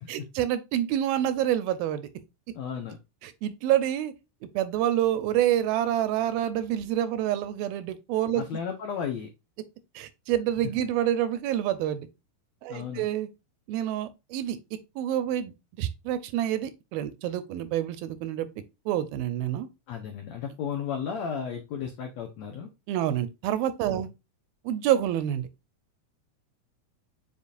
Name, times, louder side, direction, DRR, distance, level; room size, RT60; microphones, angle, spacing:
voice 1, 0.1-2.1 3.2-4.1 4.5-8.4 10.0-12.1 12.6-13.3 13.7-14.6 15.0-18.5 18.9-19.7 22.9-24.1 24.7-25.5, right 11 dB, 80° right, 2.4 m, -27 dB
voice 2, 2.5-3.0 8.3-9.3 12.7-13.0 19.9-22.7 23.9-24.1, left 7 dB, 90° left, 1.5 m, -34 dB
8.3 x 5.1 x 2.4 m
omnidirectional pair, 4.5 m